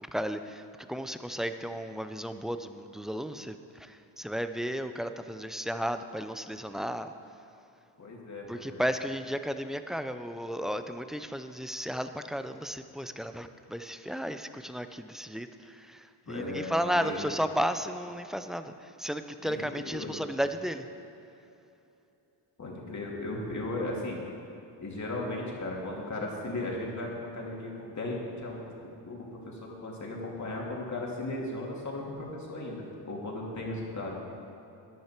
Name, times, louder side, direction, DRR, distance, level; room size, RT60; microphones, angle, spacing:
voice 1, 0.1-0.6 0.9-7.1 8.5-20.9, equal, ahead, 9 dB, 0.4 m, -34 dB
voice 2, 8.0-8.8 16.2-17.2 19.4-19.6 19.9-20.2 22.6-24.2 24.8-34.2, left 2 dB, 40° left, -2 dB, 2.8 m, -36 dB
12.5 x 10.0 x 4.5 m, 2.9 s
cardioid pair, 90°, 45 cm